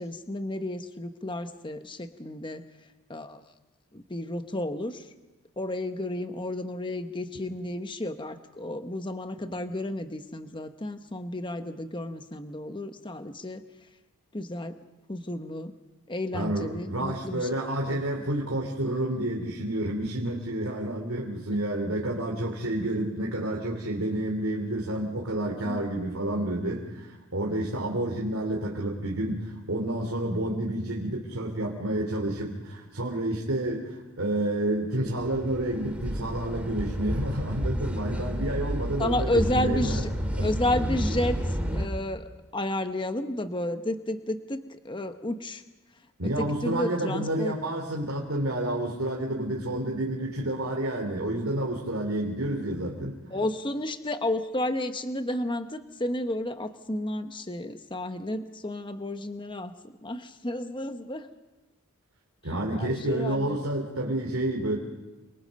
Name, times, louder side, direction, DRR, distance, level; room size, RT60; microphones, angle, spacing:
voice 1, 0.0-2.6 3.1-3.4 3.9-5.1 5.6-13.6 14.3-14.8 15.1-15.7 16.1-17.5 17.9-18.3 25.6-25.8 39.0-40.1 40.4-45.6 46.2-47.5 53.3-59.7 60.0-61.3 62.8-63.6, left 1 dB, 20° left, 8 dB, 1.0 m, -32 dB
voice 2, 16.3-40.0 40.3-40.5 46.2-53.2 62.4-64.8, right 1 dB, 65° right, 0 dB, 3.1 m, -29 dB
sound 1, 35.0-41.9, equal, 5° right, 2.4 m, -31 dB
28.0 x 27.0 x 5.4 m, 1.1 s
head